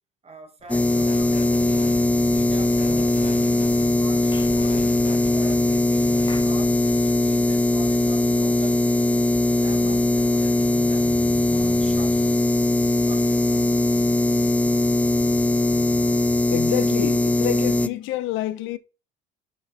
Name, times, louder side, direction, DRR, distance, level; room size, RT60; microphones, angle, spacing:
voice 1, 0.2-3.2 3.8-8.9 9.6-12.6 13.0-13.7, right 3 dB, 30° right, 3.2 m, -43 dB
sound 1, 0.6-6.4, left 4 dB, 40° left, 2.7 m, -41 dB
sound 2, 0.7-17.9, left 2 dB, 5° left, 0.5 m, -20 dB
Clapping / Chirp tweet, 4.3-4.6 6.3-6.6, left 4 dB, 20° left, 1.4 m, -41 dB
voice 2, 16.5-18.8, left 15 dB, 70° left, 0.8 m, -27 dB
6.2 x 5.5 x 5.7 m
supercardioid pair, 85°, 21 cm